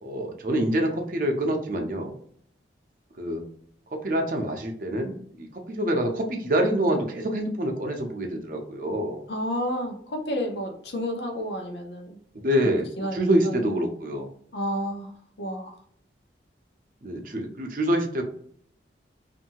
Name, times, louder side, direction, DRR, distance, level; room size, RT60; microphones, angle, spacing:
voice 1, 0.0-2.1 3.2-3.4 3.9-9.2 12.4-14.3 17.0-18.2, right 1 dB, 50° right, 2 dB, 0.6 m, -26 dB
voice 2, 9.3-12.2 12.6-13.6 14.5-15.8, equal, 70° left, 2 dB, 0.7 m, -31 dB
2.7 x 2.6 x 2.9 m, 0.64 s
head